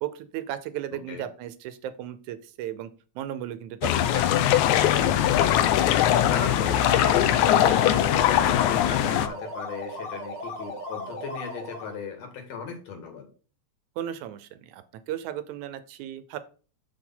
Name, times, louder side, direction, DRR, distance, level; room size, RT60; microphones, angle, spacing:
voice 1, 0.0-2.9 3.2-4.4 14.0-16.4, right 11 dB, 85° right, 13 dB, 2.1 m, -35 dB
voice 2, 0.9-1.2 5.4-13.3, left 5 dB, 65° left, 4 dB, 2.8 m, -37 dB
sound 1, 3.8-9.3, left 11 dB, 85° left, 2.0 m, -21 dB
sound 2, 6.3-12.0, left 1 dB, 45° left, 2.0 m, -36 dB
6.3 x 5.0 x 5.5 m, 0.38 s
omnidirectional pair, 3.3 m